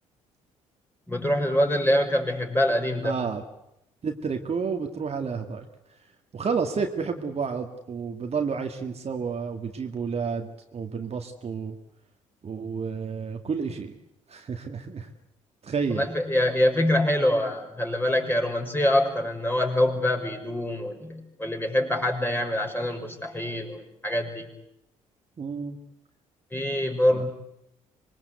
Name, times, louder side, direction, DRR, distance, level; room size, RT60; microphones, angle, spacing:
voice 1, 1.1-3.2 15.9-24.5 26.5-27.3, left 1 dB, 10° left, 2 dB, 5.9 m, -25 dB
voice 2, 3.0-3.4 4.0-5.6 6.3-11.8 12.4-14.0 14.3-15.1 15.6-16.1 25.4-25.8 27.1-27.2, right 5 dB, 40° right, 4 dB, 2.1 m, -30 dB
25.5 x 21.5 x 8.2 m, 0.80 s
hypercardioid pair, 50°, 17 cm